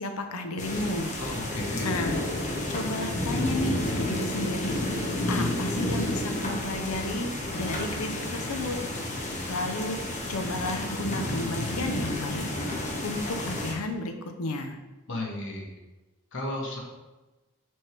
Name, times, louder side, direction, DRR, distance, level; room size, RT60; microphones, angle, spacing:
voice 1, 0.0-1.1 1.8-2.2 2.7-4.8 5.3-7.3 7.5-8.8 9.5-10.0 10.3-12.4 13.0-14.1 14.4-14.8, left 2 dB, 75° left, 6 dB, 0.7 m, -32 dB
sound 1, 0.6-13.7, left 1 dB, 35° left, 0.9 m, -31 dB
voice 2, 1.2-1.9 15.1-15.7 16.3-16.8, left 1 dB, 60° left, -1 dB, 1.3 m, -34 dB
6.2 x 3.4 x 4.5 m, 1.1 s
head